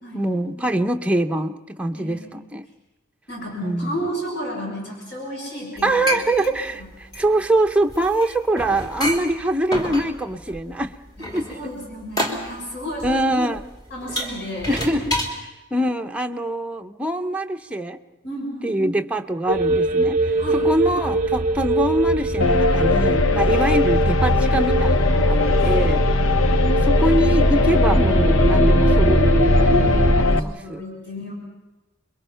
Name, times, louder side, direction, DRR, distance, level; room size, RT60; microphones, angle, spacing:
voice 1, 0.1-2.6 3.6-4.0 5.8-10.9 11.3-11.7 13.0-13.7 14.7-15.2 15.7-18.0 18.6-26.0 26.8-30.8, right 1 dB, 5° right, 5 dB, 0.7 m, -24 dB
voice 2, 1.9-2.5 3.3-6.2 6.8-6.9 11.2-13.2 13.9-14.8 18.2-18.8 20.4-20.7 23.5-23.7 25.3-26.1 29.5-31.3, equal, 55° left, -2 dB, 6.9 m, -33 dB
sound 1, 5.8-15.4, equal, 20° left, 2.5 m, -29 dB
sound 2, 19.5-30.2, right 2 dB, 40° right, 0.7 m, -21 dB
sound 3, 22.4-30.4, left 3 dB, 80° left, 0.8 m, -19 dB
28.0 x 22.5 x 5.7 m, 1.1 s
head